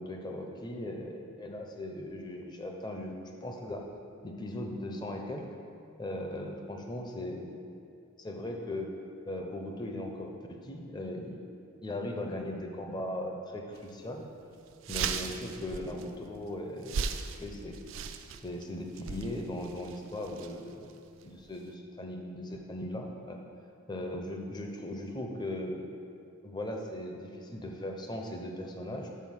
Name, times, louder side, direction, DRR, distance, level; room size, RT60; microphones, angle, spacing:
voice 1, 0.0-3.8 4.2-5.4 6.0-7.7 8.2-8.9 9.3-11.4 11.8-14.3 14.9-17.1 17.4-17.8 18.4-20.9 21.2-23.4 23.9-25.9 26.4-29.1, left 1 dB, 20° left, 2 dB, 0.5 m, -38 dB
sound 1, 13.7-13.9 14.3-14.4 14.7-21.7, right 6 dB, 60° right, 0.3 m, -38 dB
5.6 x 4.4 x 6.2 m, 2.5 s
head